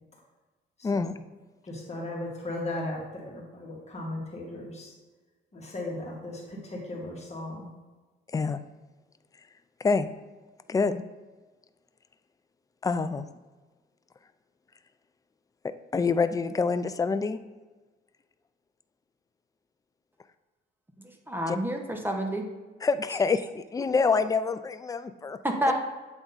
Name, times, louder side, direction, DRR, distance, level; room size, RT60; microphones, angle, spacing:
voice 1, 1.6-4.9 5.5-7.7, left 1 dB, 35° left, -3 dB, 1.9 m, -36 dB
voice 2, 10.7-11.0 12.8-13.3 15.6-17.4 21.5-21.6 22.8-25.4, left 4 dB, 15° left, 11 dB, 0.4 m, -26 dB
voice 3, 21.0-22.5 25.4-25.7, right 1 dB, 10° right, 3 dB, 1.0 m, -29 dB
8.1 x 3.5 x 4.0 m, 1.3 s
cardioid pair, 90°, 20 cm